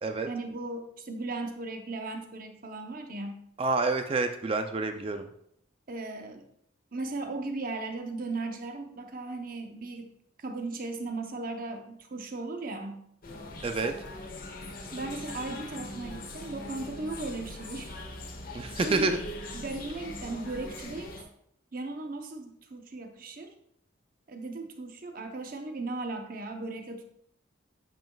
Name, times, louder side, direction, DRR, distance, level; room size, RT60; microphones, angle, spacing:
voice 1, 0.3-3.4 5.9-6.5 6.9-10.1 10.4-13.1 14.9-18.0 18.8-19.1 19.5-21.2 21.7-23.5 24.3-27.0, right 2 dB, 45° right, 5 dB, 0.7 m, -37 dB
voice 2, 3.6-5.3 13.6-13.9 18.5-19.2, right 3 dB, 30° right, 7 dB, 0.3 m, -28 dB
sound 1, 13.2-21.2, left 2 dB, 45° left, 0.9 m, -41 dB
8.9 x 5.4 x 2.3 m, 0.72 s
head